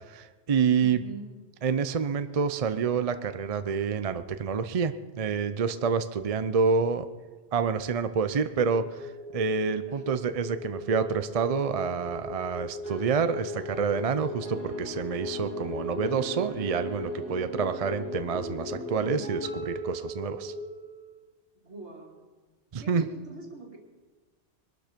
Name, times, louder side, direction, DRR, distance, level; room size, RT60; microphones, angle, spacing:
voice 1, 0.1-1.0 1.6-7.1 7.5-20.5 22.7-23.1, right 6 dB, 45° right, 11 dB, 0.5 m, -28 dB
voice 2, 0.8-1.3 9.9-10.2 13.2-13.3 21.6-22.2 22.8-23.8, right 4 dB, 65° right, 0 dB, 2.8 m, -44 dB
sound 1, 8.6-20.6, left 3 dB, 70° left, 3.7 m, -39 dB
sound 2, 12.8-21.3, equal, 55° left, 2.4 m, -40 dB
21.5 x 12.5 x 5.1 m, 1.3 s
omnidirectional pair, 1.3 m